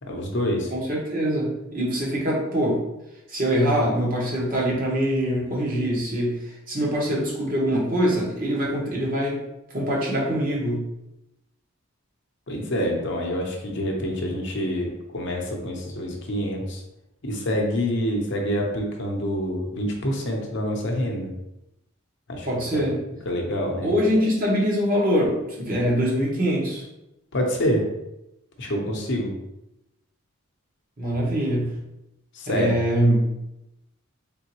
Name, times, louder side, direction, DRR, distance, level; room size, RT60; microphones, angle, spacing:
voice 1, 0.0-0.7 12.5-16.8 17.2-21.3 22.3-22.5 22.7-22.8 23.3-23.9 27.3-27.8 28.6-29.3 32.3-32.7, equal, 55° left, 1 dB, 0.8 m, -26 dB
voice 2, 0.7-2.8 3.3-9.4 9.7-10.8 22.4-22.9 23.8-26.8 31.0-31.7 32.5-33.2, equal, 40° right, -4 dB, 1.2 m, -23 dB
3.7 x 3.7 x 3.0 m, 0.90 s
head